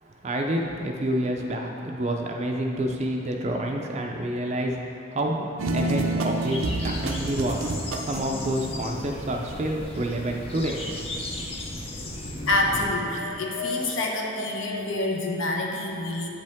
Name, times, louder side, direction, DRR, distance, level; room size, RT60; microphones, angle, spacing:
voice 1, 0.0-7.7 8.0-10.8, right 1 dB, 30° right, 1 dB, 0.4 m, -28 dB
sound 1, 5.6-8.4, right 2 dB, 90° right, 0.6 m, -28 dB
sound 2, 6.4-12.9, left 1 dB, 30° left, 0.6 m, -36 dB
voice 2, 12.5-16.3, left 2 dB, 75° left, 0 dB, 0.9 m, -27 dB
8.7 x 5.3 x 3.5 m, 2.6 s
head